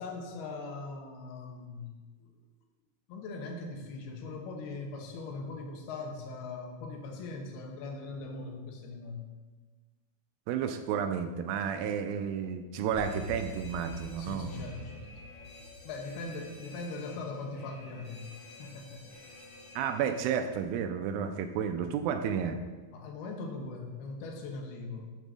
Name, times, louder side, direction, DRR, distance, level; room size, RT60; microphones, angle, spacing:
voice 1, 0.0-1.9 2.2-2.3 3.1-9.3 14.2-15.1 15.8-19.1 22.9-25.1, left 3 dB, 90° left, 3 dB, 3.1 m, -40 dB
voice 2, 10.5-14.9 19.8-22.6, right 7 dB, 80° right, 7 dB, 2.2 m, -32 dB
Alarm, 12.9-20.6, left 2 dB, 55° left, 2.2 m, -47 dB
6.8 x 6.3 x 6.1 m, 1.3 s
omnidirectional pair, 4.4 m